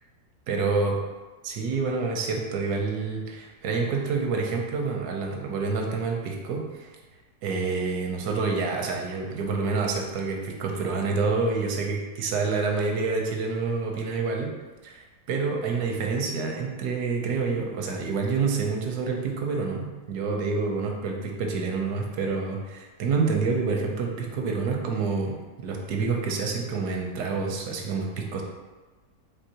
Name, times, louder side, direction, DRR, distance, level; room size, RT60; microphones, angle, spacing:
voice 1, 0.5-1.0 1.4-6.9 7.4-14.5 14.8-28.4, right 4 dB, 80° right, 2 dB, 1.2 m, -28 dB
4.4 x 3.2 x 2.8 m, 1.3 s
omnidirectional pair, 1.7 m